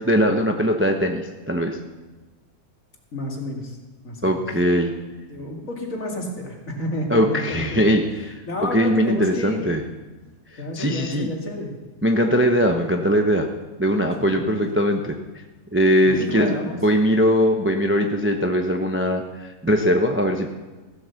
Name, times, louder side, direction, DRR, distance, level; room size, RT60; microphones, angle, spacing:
voice 1, 0.0-1.8 4.2-4.9 7.1-8.4 8.7-9.8 10.5-11.3 12.0-13.5 13.8-15.2 15.7-20.5, equal, 10° right, 4 dB, 0.6 m, -20 dB
voice 2, 3.1-3.8 4.0-4.4 5.3-7.8 8.5-9.7 10.6-11.7 14.2-14.6 16.0-16.8, left 1 dB, 55° left, 0 dB, 2.6 m, -30 dB
15.5 x 7.8 x 7.0 m, 1.2 s
omnidirectional pair, 1.7 m